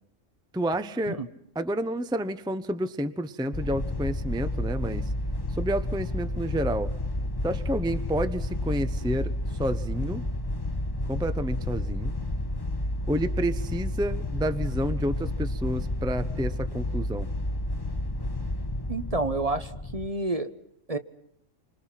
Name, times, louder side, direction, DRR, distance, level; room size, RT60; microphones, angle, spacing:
voice 1, 0.5-1.2 1.5-5.1 5.5-6.9 7.4-9.3 9.6-10.2 11.1-12.1 13.1-17.3, equal, 5° right, 11 dB, 0.7 m, -30 dB
sound 1, 3.5-20.1, left 1 dB, 20° left, 1.1 m, -31 dB
voice 2, 18.9-20.5 20.9-21.0, right 2 dB, 30° right, 10 dB, 1.0 m, -29 dB
28.5 x 25.0 x 5.8 m, 0.73 s
omnidirectional pair, 1.3 m